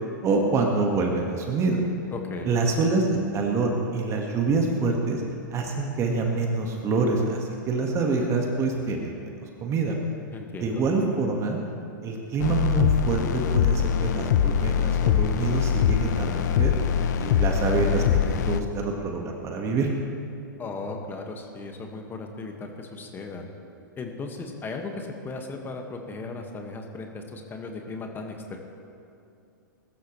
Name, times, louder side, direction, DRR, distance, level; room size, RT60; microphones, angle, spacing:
voice 1, 0.2-1.8 2.4-3.1 3.3-5.2 5.5-9.3 9.6-10.0 10.6-11.6 12.0-16.8 17.2-19.9, right 3 dB, 25° right, 1 dB, 1.8 m, -26 dB
voice 2, 2.1-2.6 10.3-10.8 20.6-23.4 24.0-28.6, left 3 dB, 20° left, 3 dB, 1.8 m, -36 dB
sound 1, 12.4-18.6, left 8 dB, 55° left, 0.7 m, -23 dB
21.5 x 13.0 x 3.3 m, 2.7 s
hypercardioid pair, 110°, 11 cm